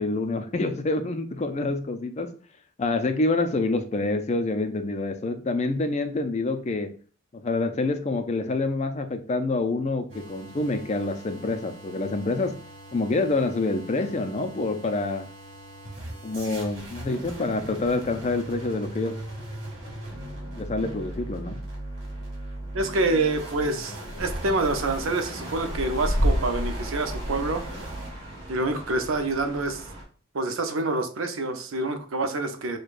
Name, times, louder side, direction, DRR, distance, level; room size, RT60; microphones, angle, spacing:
voice 1, 0.0-2.3 2.8-6.9 7.3-12.6 12.9-15.3 16.2-19.2 20.5-21.6, left 2 dB, 35° left, 8 dB, 0.4 m, -27 dB
sound 1, 10.1-28.1, right 1 dB, 60° right, 2.1 m, -39 dB
voice 2, 22.7-27.6 28.5-29.8 30.3-32.8, right 2 dB, 90° right, 7 dB, 0.7 m, -27 dB
sound 2, 24.1-30.0, equal, 30° right, 1.4 m, -31 dB
6.3 x 2.2 x 2.5 m, 0.41 s
head